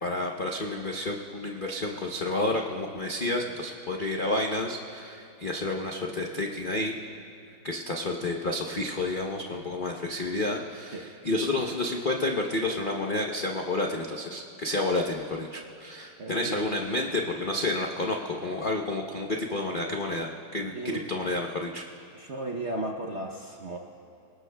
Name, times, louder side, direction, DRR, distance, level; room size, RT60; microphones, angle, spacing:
voice 1, 0.0-6.9 7.6-20.7 21.1-21.8, left 2 dB, 55° left, 0 dB, 0.5 m, -30 dB
voice 2, 16.2-16.8 20.7-21.1 22.1-23.8, right 2 dB, 55° right, 1 dB, 0.8 m, -35 dB
27.5 x 18.5 x 2.3 m, 2.5 s
omnidirectional pair, 2.1 m